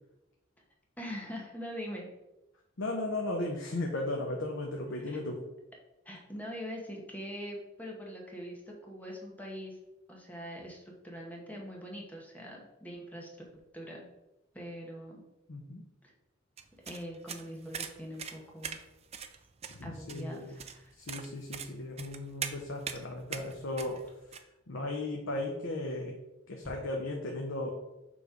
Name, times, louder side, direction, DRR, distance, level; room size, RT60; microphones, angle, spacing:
voice 1, 1.0-2.1 5.0-5.2 6.0-9.8 10.1-13.3 13.7-14.1 14.5-15.2 16.0-16.1 16.9-18.8 19.8-20.9, equal, 10° left, -1 dB, 1.3 m, -43 dB
voice 2, 2.8-5.4 15.5-15.8 19.8-20.6 21.0-24.0 24.7-26.2 26.5-27.7, left 2 dB, 70° left, 1 dB, 0.8 m, -36 dB
sound 1, 16.6-24.4, right 7 dB, 30° right, 0.5 m, -42 dB
7.0 x 3.3 x 5.1 m, 0.94 s
head